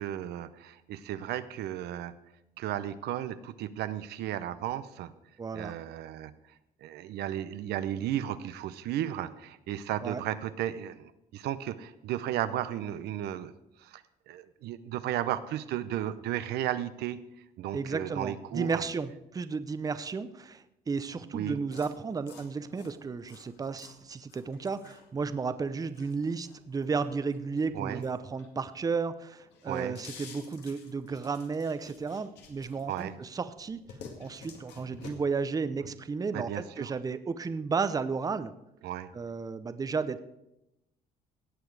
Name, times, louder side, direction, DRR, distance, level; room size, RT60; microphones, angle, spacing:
voice 1, 0.0-2.2 2.6-5.1 5.5-6.3 6.8-17.2 17.6-18.8 21.3-21.6 27.7-28.0 29.7-30.0 32.9-33.2 36.3-36.9 38.8-39.1, right 12 dB, 75° right, 12 dB, 0.7 m, -34 dB
voice 2, 5.4-5.7 10.0-10.2 17.7-33.8 34.2-36.5 36.8-38.5 39.1-40.2, right 5 dB, 20° right, 12 dB, 0.6 m, -33 dB
sound 1, 21.7-28.8 29.2-33.2 33.6-35.1, left 5 dB, 80° left, 2.1 m, -51 dB
17.5 x 7.0 x 4.7 m, 0.88 s
cardioid pair, 110°, 17 cm